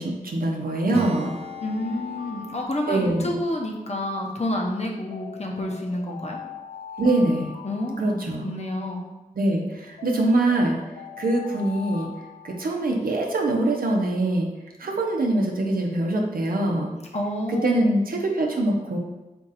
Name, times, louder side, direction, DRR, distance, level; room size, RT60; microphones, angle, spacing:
voice 1, 0.0-1.4 2.9-3.4 7.0-7.5 8.0-8.5 9.3-10.8 11.2-12.1 12.4-14.5 14.8-16.9 17.5-19.0, right 2 dB, 85° right, 0 dB, 0.7 m, -23 dB
sound 1, 0.8-4.0 5.1-8.9 10.0-13.2, left 7 dB, 80° left, 0.4 m, -42 dB
Acoustic guitar / Strum, 0.9-5.2, right 4 dB, 45° right, 0.4 m, -40 dB
voice 2, 1.6-6.4 7.6-9.0 17.1-17.8, left 1 dB, 50° left, 0 dB, 0.9 m, -29 dB
4.4 x 2.5 x 4.0 m, 1.1 s
cardioid pair, 40°, 15 cm